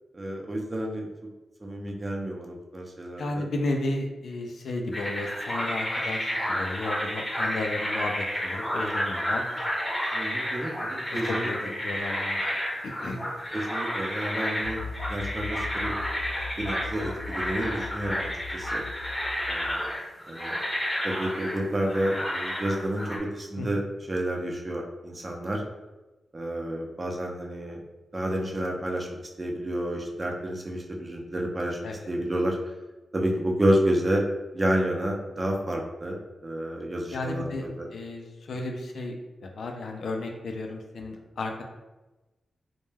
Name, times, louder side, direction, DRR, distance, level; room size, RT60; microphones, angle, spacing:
voice 1, 0.1-1.1 1.6-3.4 10.1-11.5 13.5-14.8 15.1-15.9 16.6-18.8 19.5-19.8 20.3-20.5 21.0-23.8 24.1-25.6 26.3-27.8 28.1-29.1 29.4-31.8 32.1-32.6 33.1-34.2 34.5-36.2 36.4-37.5 37.8-37.9, right 1 dB, 35° right, 0 dB, 0.5 m, -29 dB
voice 2, 3.2-9.4 11.1-12.4 12.8-13.2 23.6-23.7 31.8-32.1 37.1-39.1 39.4-41.6, left 2 dB, 75° left, 2 dB, 0.4 m, -33 dB
sound 1, 4.9-23.2, equal, 15° left, 0.7 m, -31 dB
sound 2, 14.6-19.8, left 4 dB, 75° right, 0.8 m, -39 dB
2.2 x 2.2 x 3.1 m, 1.1 s
cardioid pair, 65°, 0 cm